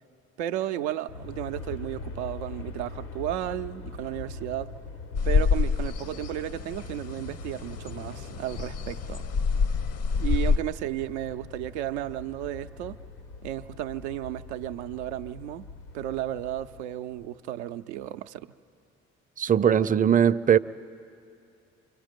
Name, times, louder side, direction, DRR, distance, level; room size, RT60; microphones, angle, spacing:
voice 1, 0.4-4.7 5.2-9.2 10.2-13.0 13.4-15.7 15.9-18.5, right 13 dB, 85° right, 0.5 m, -33 dB
Aircraft, 1.1-17.3, left 3 dB, 85° left, 1.4 m, -42 dB
sound 1, 5.1-10.6, left 5 dB, 50° left, 0.8 m, -27 dB
voice 2, 19.4-20.6, right 8 dB, 25° right, 0.5 m, -20 dB
29.0 x 25.0 x 5.2 m
hypercardioid pair, 50°, 33 cm